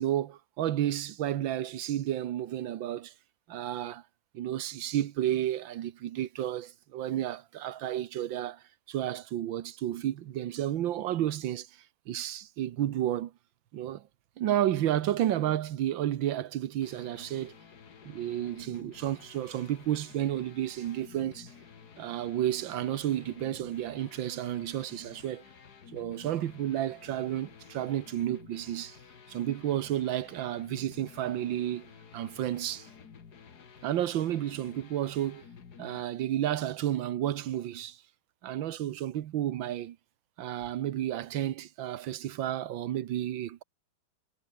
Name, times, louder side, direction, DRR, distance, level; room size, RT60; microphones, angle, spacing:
voice 1, 0.0-3.1 3.5-4.0 4.3-13.3 13.7-14.1 14.4-17.5 18.0-21.5 22.0-25.4 25.9-29.0 29.3-32.9 33.8-35.4 35.8-38.0 38.4-40.0 40.4-43.6, right 12 dB, 70° right, 1.6 m, -31 dB
sound 1, 16.8-36.0, left 6 dB, 50° left, 2.3 m, -52 dB
omnidirectional pair, 2.3 m